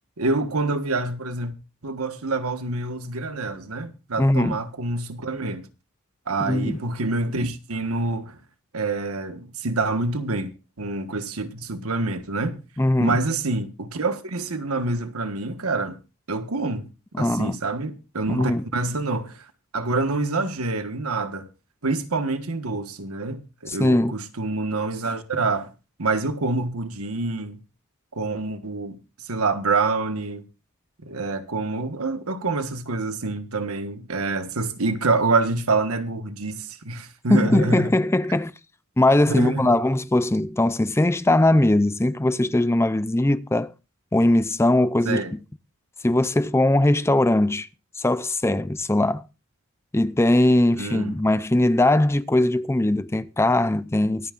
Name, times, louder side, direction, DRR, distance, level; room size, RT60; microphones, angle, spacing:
voice 1, 0.2-1.5 1.8-5.7 6.3-8.4 8.7-12.6 13.0-16.0 16.3-16.9 17.2-19.4 19.7-21.5 21.8-25.7 26.0-27.6 28.1-29.0 29.2-30.4 31.0-37.9 39.3-39.7 45.0-45.3 50.8-51.1, right 3 dB, 85° right, 1.4 m, -26 dB
voice 2, 4.2-4.6 6.4-6.8 12.8-13.2 17.1-17.6 18.3-18.6 23.7-24.1 37.3-38.5 39.0-43.7 44.1-45.4 46.0-47.7 48.0-49.2 49.9-54.3, left 1 dB, 10° left, 0.5 m, -20 dB
24.0 x 9.3 x 2.5 m
head